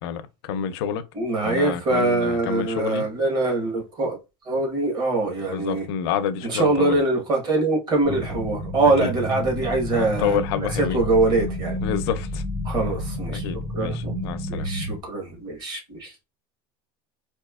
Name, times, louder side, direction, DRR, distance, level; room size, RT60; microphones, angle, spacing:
voice 1, 0.0-1.0 1.4-3.1 5.5-7.0 9.0-9.1 9.9-11.0 11.8-12.4 13.3-14.7, left 7 dB, 80° left, 0.5 m, -28 dB
voice 2, 1.1-4.2 4.4-5.9 6.4-11.8 12.6-13.5 13.7-14.2 14.5-16.2, right 2 dB, 30° right, 1.1 m, -23 dB
sound 1, 8.0-15.0, left 1 dB, 75° right, 1.7 m, -30 dB
4.2 x 2.7 x 2.3 m
cardioid pair, 165°, 13 cm